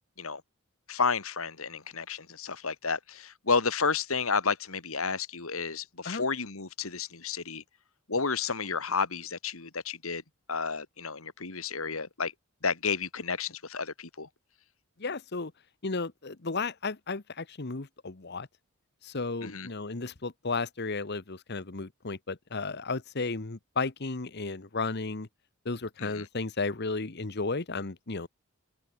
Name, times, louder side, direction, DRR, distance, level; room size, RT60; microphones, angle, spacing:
voice 1, 0.9-7.6 8.1-10.2 10.5-12.3 12.6-14.3 19.4-19.7 26.0-26.3, left 5 dB, 80° left, 2.4 m, -31 dB
voice 2, 15.0-15.5 15.8-18.5 19.0-25.3 25.6-28.3, left 3 dB, 50° left, 1.2 m, -34 dB
open air
head